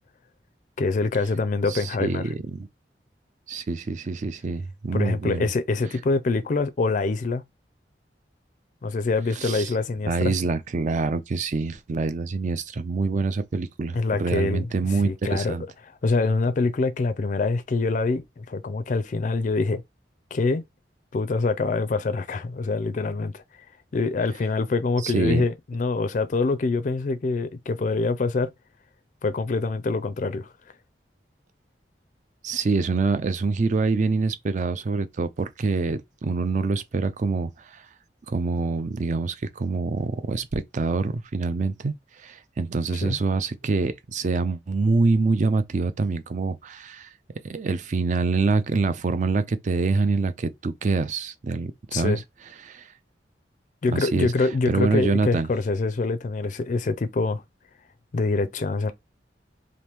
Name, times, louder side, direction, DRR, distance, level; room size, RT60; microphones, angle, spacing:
voice 1, 0.8-2.2 4.9-7.4 8.8-10.3 13.9-14.7 15.0-15.5 16.0-19.8 20.3-20.6 21.1-23.4 23.9-28.5 29.2-30.5 43.0-43.2 51.9-52.2 53.8-57.4 58.1-58.9, left 3 dB, 45° left, 0.4 m, -25 dB
voice 2, 1.7-2.7 3.5-5.5 9.4-9.7 10.1-15.7 25.0-25.4 32.4-37.8 38.3-47.1 47.4-52.2 52.6-52.9 53.9-54.3 54.7-55.5, right 4 dB, 45° right, 0.4 m, -25 dB
2.9 x 2.6 x 3.4 m
head